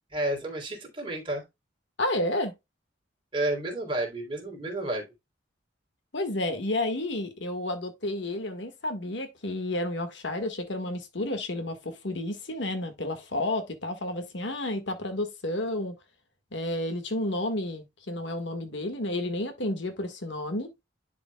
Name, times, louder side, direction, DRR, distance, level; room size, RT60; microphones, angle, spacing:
voice 1, 0.1-1.4 3.3-5.0, right 1 dB, 25° right, 3.2 m, -31 dB
voice 2, 2.0-2.5 6.1-16.0 16.5-20.7, left 1 dB, 65° left, 1.6 m, -31 dB
11.0 x 5.0 x 2.2 m
head